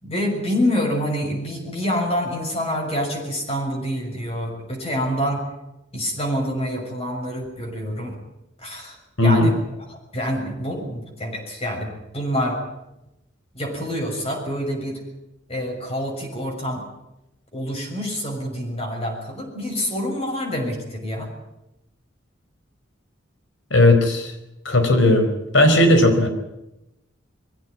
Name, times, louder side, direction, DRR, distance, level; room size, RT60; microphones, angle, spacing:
voice 1, 0.0-5.4 5.9-8.2 8.6-9.5 9.9-12.6 13.5-15.0 15.5-16.9 17.5-21.3, equal, 30° left, 0 dB, 6.5 m, -27 dB
voice 2, 9.2-9.5 23.7-24.3 24.6-25.3 25.5-26.3, left 1 dB, 70° left, 7 dB, 4.6 m, -15 dB
22.0 x 16.5 x 9.6 m, 0.91 s
head